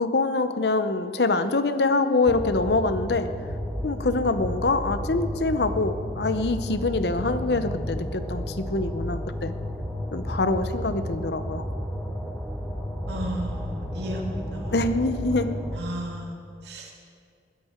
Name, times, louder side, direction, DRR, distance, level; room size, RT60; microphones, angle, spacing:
voice 1, 0.0-3.3 3.8-9.5 10.1-11.7 14.7-15.6, left 3 dB, 70° left, 10 dB, 0.8 m, -25 dB
sound 1, 2.2-15.8, equal, ahead, 1.1 m, -32 dB
voice 2, 13.1-14.8 15.2-16.9, right 1 dB, 80° right, 0 dB, 2.3 m, -35 dB
20.5 x 10.5 x 4.4 m, 2.2 s
head